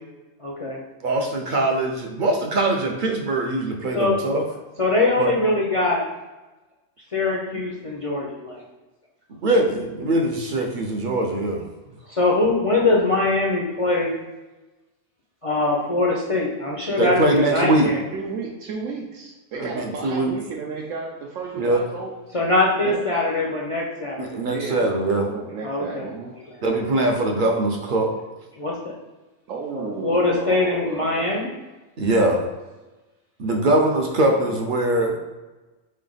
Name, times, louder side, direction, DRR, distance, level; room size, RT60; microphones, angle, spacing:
voice 1, 0.4-0.8 3.9-4.2 4.8-6.0 7.1-8.6 12.1-14.1 15.4-18.0 22.3-24.4 25.6-26.1 28.6-28.8 29.7-31.5, left 2 dB, 50° left, -3 dB, 0.4 m, -22 dB
voice 2, 1.0-4.5 5.2-5.3 9.4-11.6 17.0-17.9 19.5-20.3 21.6-21.8 24.2-25.3 26.6-28.1 32.0-32.4 33.4-35.2, right 2 dB, 55° right, 2 dB, 0.6 m, -22 dB
voice 3, 18.1-22.1 22.8-23.0 24.5-26.3 29.5-31.4, right 4 dB, 90° right, -3 dB, 1.0 m, -33 dB
3.9 x 3.3 x 3.9 m, 1.1 s
omnidirectional pair, 1.3 m